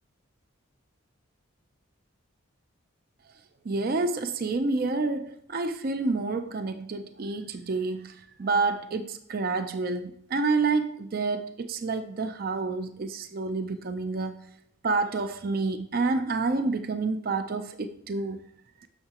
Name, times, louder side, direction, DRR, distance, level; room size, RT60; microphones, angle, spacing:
voice 1, 3.7-14.4 14.8-18.4, right 3 dB, 45° right, 0.4 m, -28 dB
10.0 x 6.6 x 2.9 m
head